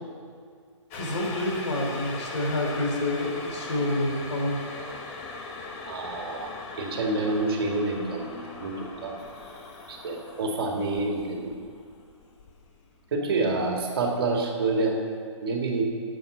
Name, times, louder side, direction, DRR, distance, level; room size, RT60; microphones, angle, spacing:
voice 1, 0.9-4.6, left 1 dB, 65° left, -1 dB, 3.9 m, -28 dB
sound 1, 0.9-13.0 13.3-13.4, left 3 dB, 25° left, 1.4 m, -40 dB
voice 2, 5.8-6.5 6.8-9.1 9.9-11.5 13.1-15.0 15.4-15.8, right 3 dB, 50° right, 1 dB, 2.1 m, -28 dB
9.2 x 8.0 x 9.4 m, 2.1 s
hypercardioid pair, 145°, 16 cm